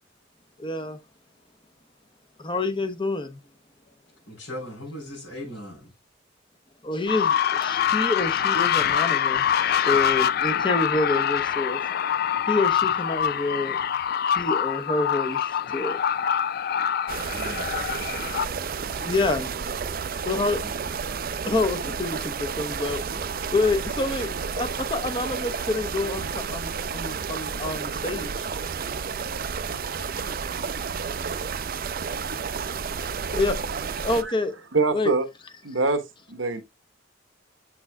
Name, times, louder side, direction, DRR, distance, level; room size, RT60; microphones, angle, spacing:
voice 1, 0.6-1.0 2.4-3.4 6.8-11.8 12.5-13.8 14.3-16.0 18.9-19.5 20.2-20.6 21.4-28.5 33.3-33.6 34.0-34.5 34.9-35.1, left 2 dB, 25° left, 0.9 m, -27 dB
voice 2, 4.3-5.9 17.3-17.7 20.6-20.7, left 1 dB, 90° left, 3.9 m, -38 dB
sound 1, 7.1-18.5, left 9 dB, 50° left, 0.3 m, -25 dB
sound 2, 17.1-34.2, right 5 dB, 50° right, 0.5 m, -31 dB
voice 3, 34.7-35.2 35.6-36.6, right 3 dB, 90° right, 1.2 m, -24 dB
8.1 x 6.1 x 2.3 m
head